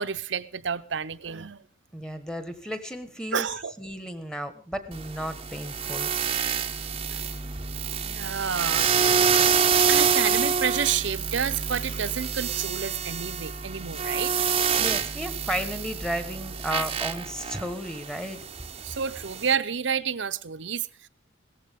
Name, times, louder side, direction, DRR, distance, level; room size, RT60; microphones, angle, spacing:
voice 1, 0.0-1.6 3.3-3.7 7.1-7.2 8.0-9.6 9.9-14.4 18.8-21.1, right 7 dB, 65° right, 0.7 m, -30 dB
voice 2, 1.9-3.5 3.8-6.1 14.7-18.4, equal, 5° left, 1.3 m, -33 dB
sound 1, 4.9-19.5, right 7 dB, 30° right, 0.7 m, -27 dB
17.5 x 14.5 x 3.6 m
head